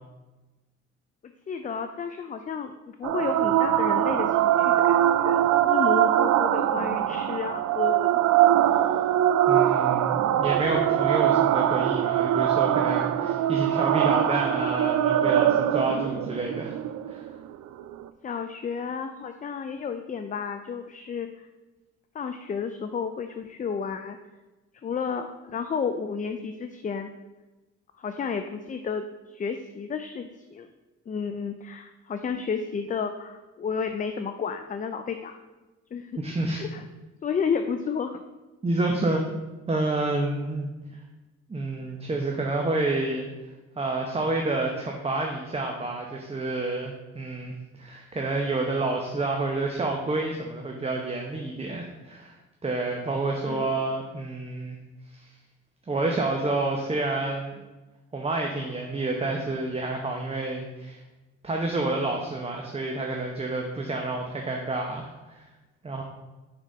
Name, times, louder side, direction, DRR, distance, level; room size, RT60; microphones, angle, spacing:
voice 1, 1.5-8.2 18.2-21.5 22.1-24.2 24.8-27.1 28.0-30.7 31.1-35.3 35.9-36.2 36.5-36.8 37.2-38.2 53.5-53.8, left 6 dB, 25° left, 7 dB, 0.4 m, -32 dB
sound 1, 3.0-18.0, right 11 dB, 70° right, 0.5 m, -22 dB
voice 2, 9.5-16.8 17.1-17.3 36.2-36.6 38.6-39.2 39.7-40.7 41.5-43.3 43.8-52.4 52.6-54.8 55.1-55.3 55.9-57.5 58.1-61.0 61.4-65.5 65.8-66.0, right 2 dB, 20° right, 1 dB, 0.8 m, -29 dB
6.3 x 4.1 x 5.2 m, 1.1 s
cardioid pair, 90°, 30 cm